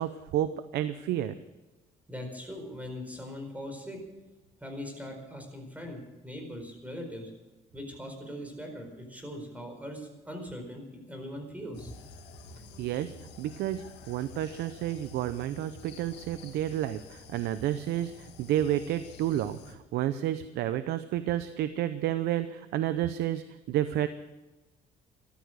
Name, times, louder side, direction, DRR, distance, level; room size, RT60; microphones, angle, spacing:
voice 1, 0.0-1.3 12.8-24.1, right 12 dB, 80° right, 12 dB, 0.7 m, -31 dB
voice 2, 2.1-4.0 4.6-7.3 7.7-12.0 12.6-12.7, equal, 10° right, 3 dB, 4.6 m, -41 dB
sound 1, 11.7-19.7, left 4 dB, 85° left, 2.3 m, -50 dB
14.5 x 12.5 x 6.5 m, 1.1 s
cardioid pair, 110°, 17 cm